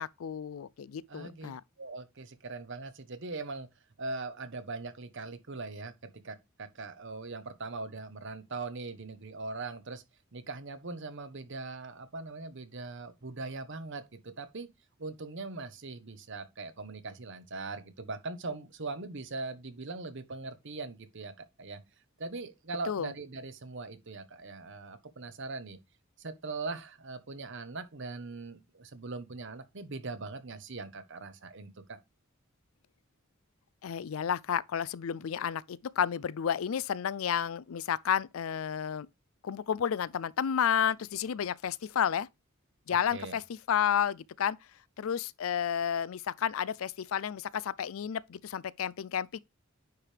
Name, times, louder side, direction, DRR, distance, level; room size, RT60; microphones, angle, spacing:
voice 1, 0.0-1.6 22.9-23.1 33.8-39.1 39.4-42.3 42.9-44.6 45.0-49.4, left 8 dB, 90° left, 0.4 m, -31 dB
voice 2, 1.1-1.5 1.8-3.7 4.0-10.0 10.3-14.7 15.0-21.8 22.2-25.8 26.2-32.0 43.1-43.4, right 3 dB, 65° right, 1.1 m, -41 dB
9.5 x 3.4 x 4.5 m
head